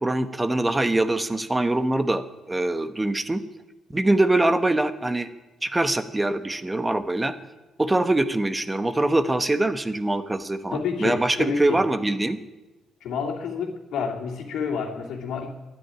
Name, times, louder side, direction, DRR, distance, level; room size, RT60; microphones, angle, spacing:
voice 1, 0.0-3.4 3.9-5.3 5.6-7.3 7.8-12.4, right 2 dB, 15° right, 11 dB, 1.1 m, -23 dB
voice 2, 10.7-11.8 13.0-15.5, left 5 dB, 80° left, -5 dB, 2.5 m, -29 dB
12.5 x 10.5 x 10.0 m, 1.1 s
cardioid pair, 90°, 0 cm